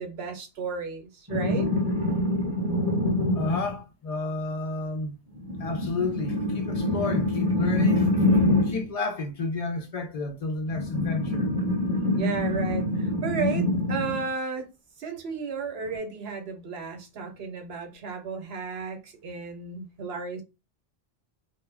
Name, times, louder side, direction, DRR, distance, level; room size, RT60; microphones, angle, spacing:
voice 1, 0.0-1.7 12.2-14.7 15.0-20.4, right 5 dB, 80° right, 1.0 m, -33 dB
sound 1, 1.3-3.8 5.4-8.9 10.7-14.3 15.9-16.0, left 1 dB, 5° right, 0.8 m, -25 dB
voice 2, 3.3-5.2 5.6-8.1 8.6-11.5, left 3 dB, 55° left, 0.4 m, -31 dB
2.2 x 2.1 x 3.3 m
omnidirectional pair, 1.0 m